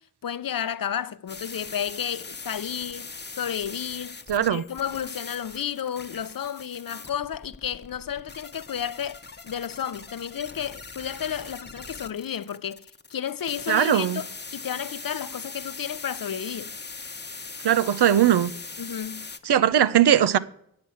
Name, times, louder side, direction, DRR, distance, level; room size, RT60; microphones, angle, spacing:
voice 1, 0.2-3.1 3.4-4.2 4.5-16.8 18.8-19.3, left 9 dB, 60° left, 0.6 m, -32 dB
sound 1, 1.3-19.4, left 4 dB, 25° left, 0.9 m, -41 dB
voice 2, 4.3-4.6 13.7-14.2 17.6-18.5 19.5-20.4, right 10 dB, 85° right, 0.6 m, -19 dB
9.5 x 6.0 x 8.4 m
cardioid pair, 55°, 39 cm